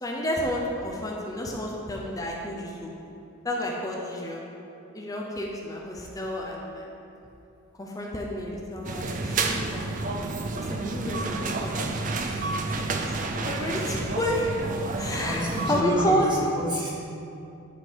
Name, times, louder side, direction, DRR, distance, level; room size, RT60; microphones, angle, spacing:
voice 1, 0.0-2.9 3.4-4.4 4.9-6.8 7.8-10.2 10.6-11.3 11.6-12.2 12.8-13.1 13.4-14.5 14.9-16.5, equal, 15° left, -2 dB, 0.7 m, -30 dB
sound 1, 8.8-15.8, right 3 dB, 35° right, 0.4 m, -30 dB
voice 2, 12.2-12.6 13.9-14.1 15.0-16.9, equal, 20° right, -5 dB, 1.3 m, -31 dB
10.5 x 3.8 x 4.6 m, 2.7 s
head